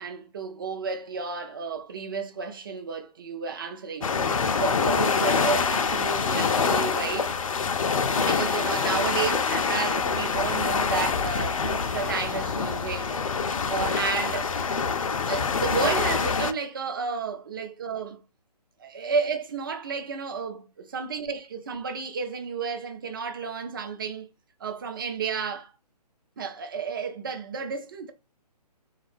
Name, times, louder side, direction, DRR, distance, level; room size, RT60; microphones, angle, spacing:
voice 1, 0.0-7.4 8.1-13.2 13.4-14.5 15.2-18.2 18.8-24.3 24.6-25.7 26.4-28.1, right 5 dB, 30° right, 0.5 m, -32 dB
sound 1, 4.0-16.5, left 5 dB, 55° left, 0.4 m, -25 dB
3.7 x 2.3 x 3.2 m
figure-of-eight pair, 140°, 21 cm